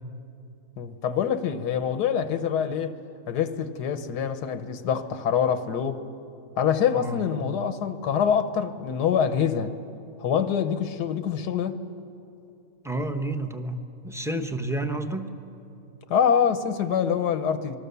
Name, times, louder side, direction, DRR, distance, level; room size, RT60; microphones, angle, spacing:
voice 1, 0.8-2.9 3.3-6.0 6.6-9.7 10.2-11.8 16.1-17.8, left 8 dB, 85° left, 10 dB, 1.5 m, -25 dB
voice 2, 12.8-15.3, right 1 dB, ahead, 7 dB, 0.7 m, -30 dB
26.0 x 22.0 x 6.9 m, 2.7 s
omnidirectional pair, 1.7 m